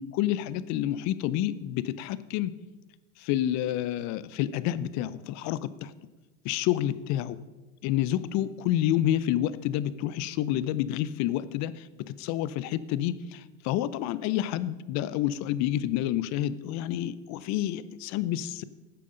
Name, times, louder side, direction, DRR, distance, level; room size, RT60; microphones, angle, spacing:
voice 1, 0.0-2.5 3.2-5.9 6.4-7.4 7.8-18.6, left 12 dB, 40° left, 17 dB, 0.7 m, -29 dB
13.5 x 8.5 x 5.2 m, 1.2 s
hypercardioid pair, 100°, 45 cm